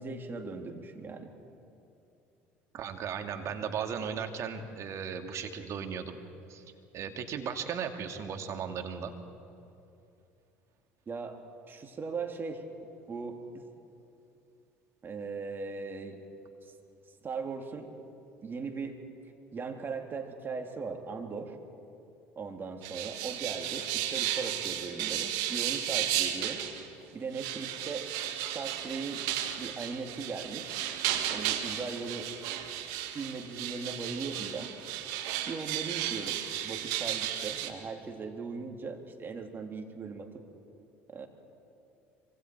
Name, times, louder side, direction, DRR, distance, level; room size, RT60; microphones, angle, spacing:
voice 1, 0.0-1.3 3.4-3.6 11.1-12.6 13.1-13.6 15.0-16.2 17.2-17.9 18.4-19.0 19.5-21.6 22.4-26.6 27.1-29.3 29.6-30.8 31.3-32.3 33.1-34.7 35.5-40.4 41.1-41.3, right 4 dB, 35° right, 4 dB, 3.0 m, -39 dB
voice 2, 2.7-6.2 6.5-6.6 6.9-9.1, right 7 dB, 50° right, 5 dB, 2.2 m, -36 dB
sound 1, 22.8-26.9 27.3-37.7, right 11 dB, 65° right, 1.6 m, -34 dB
25.5 x 25.0 x 4.7 m, 2.7 s
hypercardioid pair, 65°, 7 cm